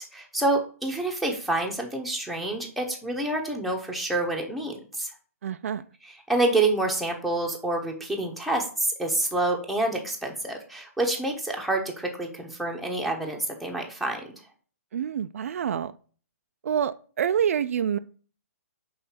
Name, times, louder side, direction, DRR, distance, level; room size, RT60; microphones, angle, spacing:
voice 1, 0.1-5.1 6.0-14.2, right 2 dB, ahead, 1.0 m, -27 dB
voice 2, 5.4-5.8 14.9-15.9 16.6-18.0, right 8 dB, 65° right, 0.4 m, -27 dB
5.5 x 3.9 x 5.7 m
hypercardioid pair, 150°, 8 cm